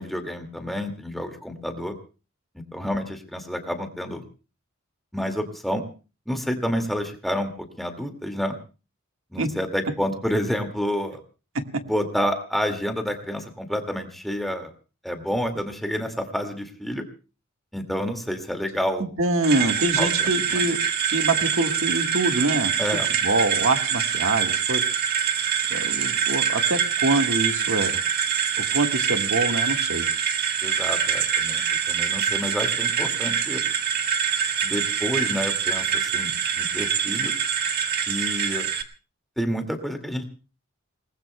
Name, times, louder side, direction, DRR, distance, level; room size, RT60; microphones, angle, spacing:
voice 1, 0.0-1.9 2.7-4.2 5.1-5.8 6.3-8.6 9.3-11.2 11.9-14.7 15.0-17.0 17.7-19.0 20.0-20.6 22.8-23.1 30.6-33.6 34.6-37.3 38.1-38.7 39.4-40.2, equal, ahead, 4 dB, 2.1 m, -29 dB
voice 2, 19.2-20.8 21.0-22.7 23.2-24.8 25.7-28.0 28.7-30.1, right 2 dB, 70° right, 5 dB, 1.6 m, -25 dB
sound 1, 19.4-38.8, right 8 dB, 50° right, 1.5 m, -25 dB
28.5 x 19.5 x 2.3 m, 0.34 s
head